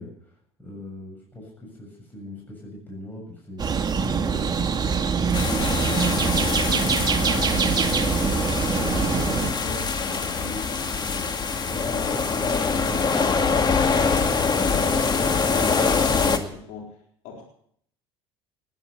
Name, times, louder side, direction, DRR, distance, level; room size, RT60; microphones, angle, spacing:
voice 1, 0.0-4.8 5.1-8.3 8.7-15.3 16.1-16.5, left 1 dB, 15° left, -2 dB, 7.4 m, -41 dB
sound 1, 3.6-9.5, right 6 dB, 30° right, 2.0 m, -24 dB
sound 2, 5.3-16.4, left 5 dB, 30° left, 2.1 m, -24 dB
voice 2, 15.4-16.9 17.2-17.4, left 4 dB, 65° left, -1 dB, 4.1 m, -40 dB
19.5 x 11.0 x 6.8 m, 0.64 s
hypercardioid pair, 70°, 14 cm